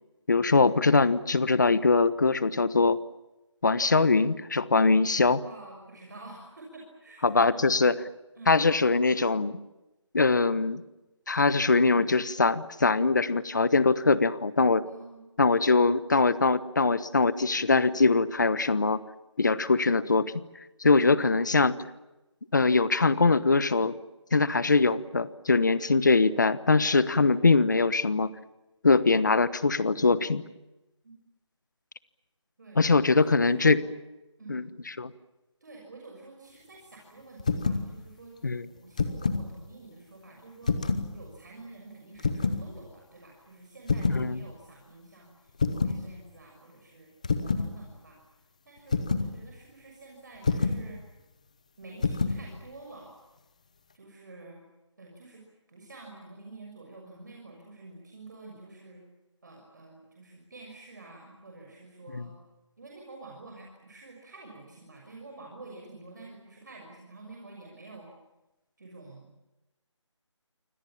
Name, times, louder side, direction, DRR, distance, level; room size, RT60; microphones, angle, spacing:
voice 1, 0.3-3.0 3.6-5.4 7.2-7.9 8.5-9.6 10.1-10.8 11.3-14.8 15.4-19.0 19.4-20.4 20.8-21.7 22.5-24.0 24.3-28.3 28.8-30.4 32.8-33.8 34.5-34.6 35.0-35.1 38.4-38.6 44.1-44.4 62.1-62.3, left 3 dB, 40° left, 16 dB, 1.2 m, -22 dB
voice 2, 5.5-7.7 8.4-8.6 14.8-15.3 31.0-31.2 32.6-33.9 34.4-34.7 35.6-47.1 47.4-48.2 48.7-51.0 51.8-53.2 53.9-54.6 55.0-55.4 55.7-59.0 59.4-62.3 62.8-68.1 68.8-69.3, right 3 dB, 40° right, 0 dB, 6.3 m, -49 dB
sound 1, 37.4-37.9 38.8-39.5 40.6-41.1 42.2-42.6 43.9-44.3 45.6-46.0 47.2-47.7 48.9-49.3 50.4-50.8 52.0-52.4, left 4 dB, 15° left, 0.9 m, -27 dB
29.0 x 25.5 x 7.3 m, 1.0 s
figure-of-eight pair, 175°, 16 cm